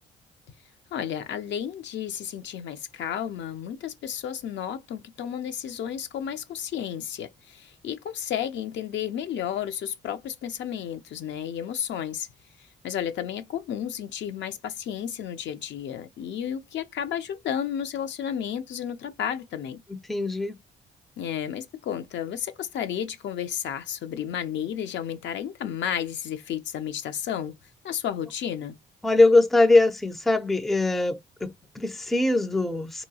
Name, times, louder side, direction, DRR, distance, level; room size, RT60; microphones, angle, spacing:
voice 1, 0.9-12.3 12.6-19.8 21.2-27.6 27.8-28.8, left 9 dB, 65° left, 0.5 m, -32 dB
voice 2, 19.9-20.5 29.0-33.0, left 2 dB, ahead, 0.4 m, -22 dB
2.8 x 2.3 x 2.7 m
cardioid pair, 90°, 20 cm